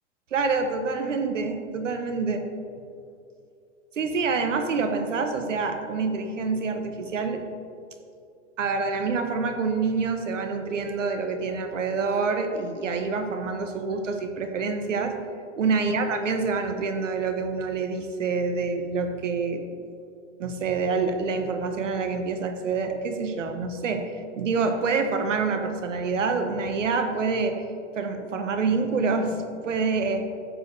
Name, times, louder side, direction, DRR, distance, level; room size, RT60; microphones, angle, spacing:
voice 1, 0.3-2.4 4.0-7.4 8.6-15.1 15.6-19.6 20.4-27.5 28.0-30.3, right 4 dB, 85° right, 6 dB, 1.0 m, -27 dB
9.9 x 7.6 x 2.7 m, 2.5 s
hypercardioid pair, 105°, 37 cm